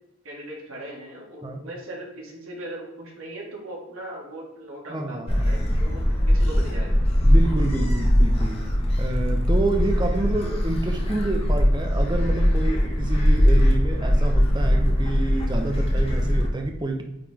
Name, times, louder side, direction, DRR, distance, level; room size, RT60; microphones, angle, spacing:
voice 1, 0.2-7.0, right 1 dB, 75° right, -2 dB, 1.8 m, -39 dB
voice 2, 4.9-5.4 7.2-8.7 9.0-17.0, right 2 dB, 20° right, 4 dB, 0.6 m, -28 dB
Gull seagull, 5.3-16.5, equal, 25° left, 0.9 m, -21 dB
8.6 x 3.2 x 3.6 m, 0.91 s
head